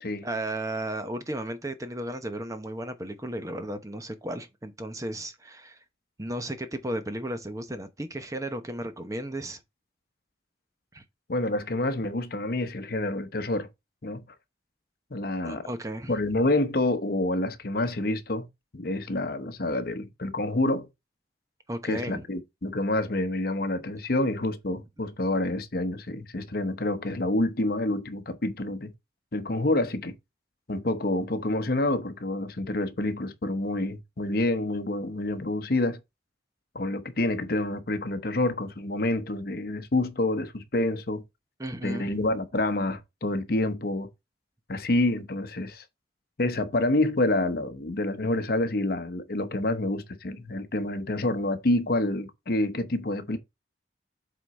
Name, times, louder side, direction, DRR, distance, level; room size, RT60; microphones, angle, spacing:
voice 1, 0.2-5.8 6.2-9.6 10.9-11.0 15.4-16.1 21.7-22.2 41.6-42.2, right 1 dB, 20° right, 0.8 m, -34 dB
voice 2, 11.3-13.7 14.0-14.2 15.1-15.7 16.1-18.5 18.7-20.9 21.8-28.9 29.3-30.1 30.7-36.0 36.7-41.2 41.8-44.1 44.7-45.8 46.4-53.4, left 2 dB, 60° left, 0.9 m, -28 dB
8.0 x 3.9 x 4.2 m
head